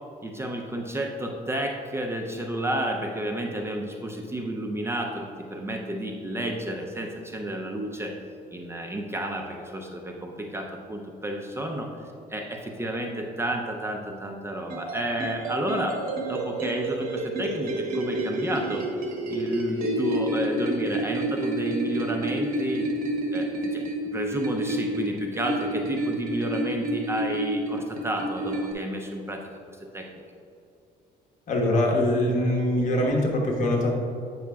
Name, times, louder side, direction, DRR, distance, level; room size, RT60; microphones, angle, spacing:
voice 1, 0.2-8.2 8.5-11.9 12.3-16.0 16.3-18.8 19.3-22.9 23.3-30.1, right 1 dB, 15° right, 1 dB, 0.5 m, -31 dB
sound 1, 14.7-28.7, right 1 dB, 60° right, 1.2 m, -29 dB
voice 2, 31.5-33.9, left 1 dB, 50° left, -1 dB, 1.3 m, -23 dB
8.2 x 6.1 x 2.3 m, 2.6 s
cardioid pair, 110°, 17 cm